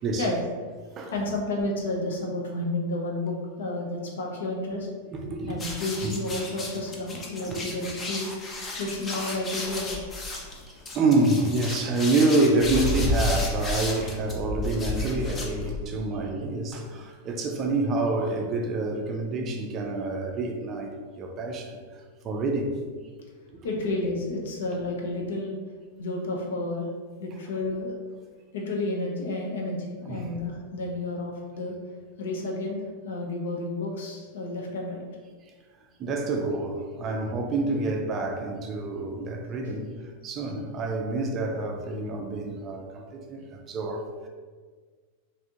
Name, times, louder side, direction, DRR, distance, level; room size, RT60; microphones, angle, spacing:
voice 1, 1.1-4.9 5.5-8.3 8.7-10.0 23.6-25.6 26.0-26.9 27.2-27.9 28.5-31.8 32.2-35.0, left 2 dB, 60° left, 0 dB, 0.6 m, -31 dB
voice 2, 5.1-5.6 6.0-6.1 7.5-7.6 10.7-21.8 22.2-22.7 23.5-23.6 30.1-30.3 36.0-44.3, right 2 dB, 30° right, 3 dB, 0.4 m, -27 dB
sound 1, 5.5-16.0, left 2 dB, 20° left, 0.6 m, -32 dB
3.2 x 2.6 x 2.7 m, 1.5 s
figure-of-eight pair, 90°, 0 cm